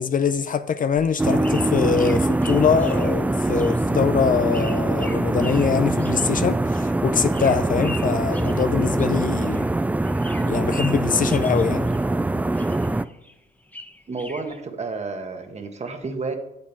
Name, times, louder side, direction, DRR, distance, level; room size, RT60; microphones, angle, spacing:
voice 1, 0.0-9.7 10.4-11.9, left 6 dB, 45° left, 0.6 m, -23 dB
sound 1, 0.7-9.8 10.0-12.3 12.5-14.6, left 1 dB, 10° left, 1.0 m, -42 dB
sound 2, 1.2-13.0, right 2 dB, 10° right, 0.3 m, -23 dB
voice 2, 14.1-16.4, right 3 dB, 35° right, 1.5 m, -31 dB
8.9 x 7.5 x 4.6 m
cardioid pair, 90°, 20 cm